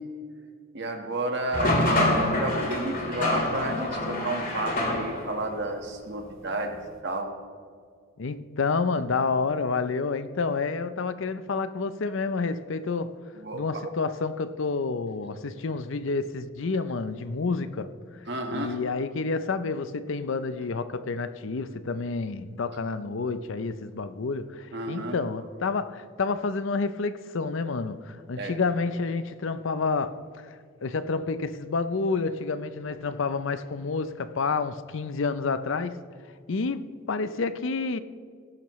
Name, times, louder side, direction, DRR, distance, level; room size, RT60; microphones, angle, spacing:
voice 1, 0.7-6.8 7.0-7.3 13.4-13.9 18.3-18.8 24.7-25.2 28.4-28.6, right 2 dB, 55° right, 1.5 m, -32 dB
sound 1, 1.5-5.4, left 1 dB, 40° left, 2.1 m, -26 dB
voice 2, 8.2-13.1 13.5-17.9 18.5-30.6 30.8-36.0 36.5-38.0, left 4 dB, 65° left, 0.5 m, -29 dB
18.0 x 11.0 x 3.1 m
head